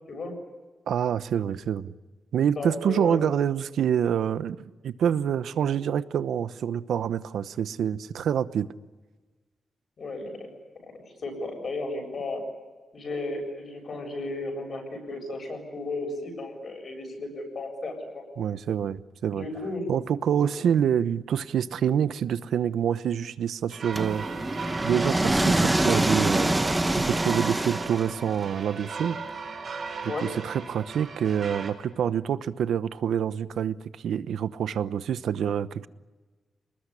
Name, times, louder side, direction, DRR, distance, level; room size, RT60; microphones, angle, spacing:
voice 1, 0.9-1.9 2.3-8.7 18.4-19.5 19.9-24.3 24.8-26.5 26.9-29.2 30.0-33.8 34.0-35.9, right 8 dB, 85° right, 14 dB, 0.9 m, -27 dB
voice 2, 2.6-3.2 10.0-10.5 10.8-10.9 11.2-12.4 12.9-18.2 19.3-20.0 30.1-30.3, left 2 dB, 40° left, 4 dB, 7.5 m, -34 dB
sound 1, 23.7-31.7, right 4 dB, 40° right, 4.2 m, -38 dB
sound 2, 24.0-28.4, right 1 dB, 10° right, 1.1 m, -25 dB
29.0 x 20.0 x 9.9 m, 1.3 s
wide cardioid pair, 180°, 0 cm